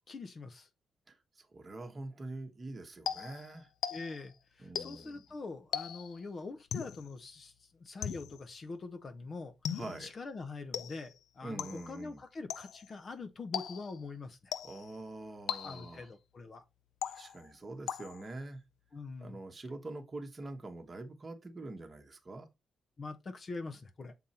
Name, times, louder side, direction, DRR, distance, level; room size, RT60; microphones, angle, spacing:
voice 1, 0.1-0.7 3.9-14.5 15.6-16.6 18.9-19.4 23.0-24.1, left 3 dB, 30° left, 0.6 m, -44 dB
voice 2, 1.1-3.7 4.6-5.2 9.7-10.1 11.4-12.2 14.6-16.1 17.1-18.6 19.2-22.5, right 2 dB, 20° right, 1.1 m, -45 dB
sound 1, 3.1-4.3 4.8-5.2 5.7-6.2 6.7-7.1 8.0-8.5 9.6-10.1 10.7-11.2 11.6-12.0 12.5-12.9 13.5-14.0 14.5-15.0 15.5-16.0 17.0-17.5 17.9-18.4, left 9 dB, 85° left, 0.5 m, -39 dB
7.1 x 3.9 x 4.1 m
wide cardioid pair, 165°, 0 cm